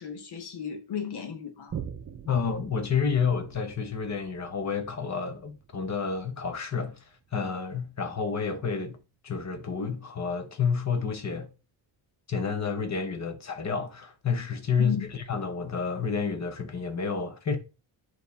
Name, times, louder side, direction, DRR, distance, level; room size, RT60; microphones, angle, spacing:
voice 1, 0.0-1.8 14.8-15.1, left 8 dB, 60° left, 1.3 m, -35 dB
Boom, 1.7-8.6 9.1-9.2, right 8 dB, 35° right, 0.6 m, -45 dB
voice 2, 2.2-7.0 7.3-9.0 9.2-11.5 12.3-17.6, left 6 dB, 35° left, 1.0 m, -29 dB
9.1 x 3.1 x 4.1 m
wide cardioid pair, 165°, 45 cm